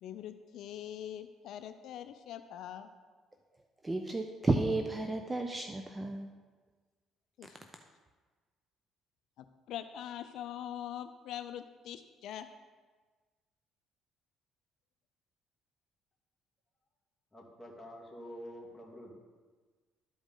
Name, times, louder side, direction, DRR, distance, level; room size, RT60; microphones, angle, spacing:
voice 1, 0.0-2.9 7.4-7.6 9.4-12.5 18.2-18.3, left 10 dB, 70° left, 9 dB, 0.4 m, -43 dB
voice 2, 3.8-6.3, right 2 dB, 20° right, 4 dB, 0.6 m, -32 dB
voice 3, 17.3-19.2, equal, 5° left, -4 dB, 2.2 m, -47 dB
12.5 x 5.1 x 3.9 m, 1.4 s
cardioid pair, 95°, 0 cm